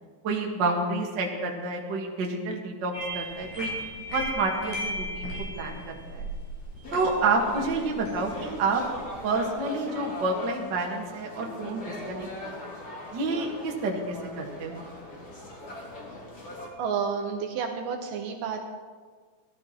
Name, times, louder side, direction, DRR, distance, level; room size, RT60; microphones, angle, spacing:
voice 1, 0.2-3.8 4.1-6.2 6.9-8.8 9.2-12.5 13.1-14.8, right 3 dB, 45° right, 0 dB, 1.6 m, -29 dB
sound 1, 2.9-9.5, equal, 60° left, 5.8 m, -37 dB
sound 2, 6.8-16.7, left 1 dB, 30° left, 2.5 m, -40 dB
voice 2, 16.8-18.7, right 6 dB, 70° right, 4 dB, 2.4 m, -30 dB
17.5 x 12.0 x 4.4 m, 1.5 s
omnidirectional pair, 4.4 m